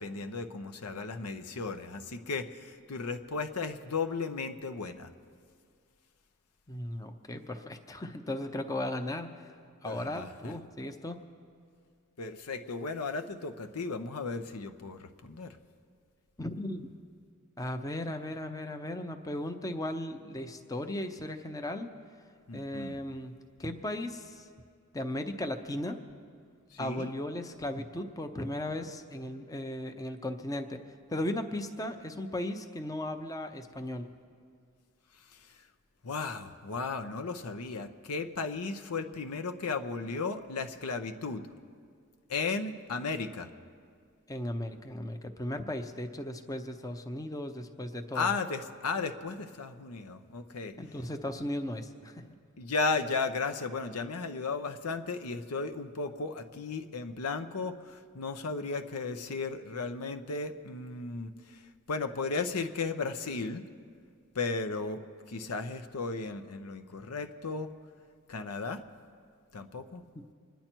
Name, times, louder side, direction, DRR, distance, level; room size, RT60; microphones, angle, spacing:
voice 1, 0.0-5.1 9.8-10.5 12.2-15.6 22.5-23.0 26.7-27.1 35.3-35.5 36.0-41.4 42.3-43.5 48.1-50.7 52.6-61.6 61.9-63.6 64.3-67.7 68.3-68.8 69.5-70.0, left 4 dB, 85° left, 8 dB, 0.8 m, -35 dB
voice 2, 6.7-9.5 9.8-11.2 16.4-16.9 17.6-21.9 22.5-24.5 24.9-26.0 26.8-30.8 31.1-34.1 44.3-48.3 50.8-52.3, left 1 dB, 15° left, 6 dB, 0.7 m, -36 dB
26.0 x 10.5 x 4.5 m, 2.2 s
head